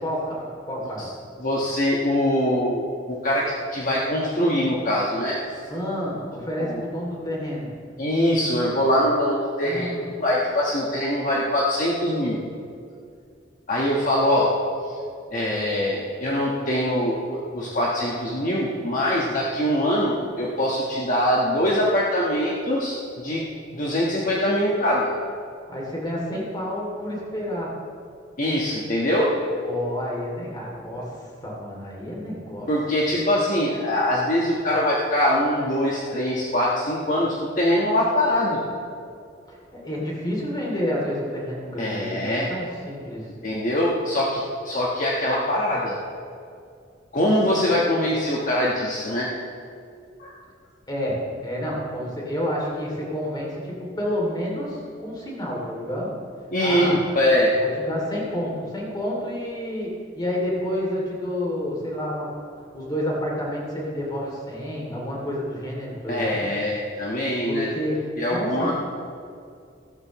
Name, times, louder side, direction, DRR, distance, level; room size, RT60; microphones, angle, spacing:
voice 1, 0.0-1.1 5.7-7.7 9.6-10.1 25.7-27.8 29.6-32.7 39.5-43.3 50.9-56.1 56.6-57.0 57.5-66.4 67.5-68.7, equal, 20° left, -3 dB, 2.8 m, -29 dB
voice 2, 1.4-5.6 6.6-6.8 8.0-9.9 10.2-12.4 13.7-14.5 14.8-15.0 15.3-23.4 23.7-25.1 28.4-29.3 32.7-38.6 41.8-42.5 43.4-46.0 47.1-49.3 50.2-50.4 56.5-57.5 66.1-67.7 68.2-68.7, left 1 dB, 45° left, -5 dB, 1.4 m, -23 dB
16.0 x 13.5 x 3.1 m, 2.4 s
head